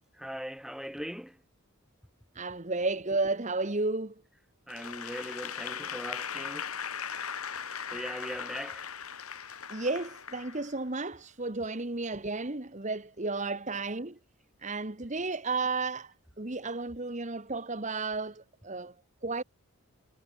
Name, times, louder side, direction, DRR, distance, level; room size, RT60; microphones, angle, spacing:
voice 1, 0.2-1.4 4.7-6.7 7.9-8.9, equal, ahead, 7.4 m, -40 dB
voice 2, 2.3-4.1 9.7-14.2 14.6-18.9 19.2-19.4, right 3 dB, 35° right, 1.4 m, -33 dB
Applause / Crowd, 4.7-11.0, left 7 dB, 75° left, 3.9 m, -39 dB
head